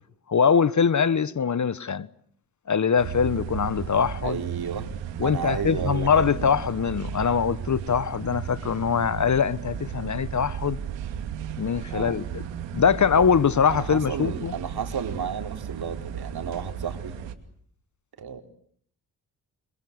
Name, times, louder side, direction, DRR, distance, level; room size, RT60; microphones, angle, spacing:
voice 1, 0.3-2.1 2.7-4.4 5.2-10.8 11.6-12.4 12.7-14.5, left 6 dB, 40° left, 1.2 m, -23 dB
sound 1, 3.0-17.3, right 8 dB, 80° right, 2.6 m, -35 dB
voice 2, 4.2-4.9 5.2-6.6 11.9-12.2 13.7-17.2 18.2-18.4, right 7 dB, 60° right, 4.1 m, -32 dB
28.0 x 26.0 x 8.1 m
hypercardioid pair, 45°, 43 cm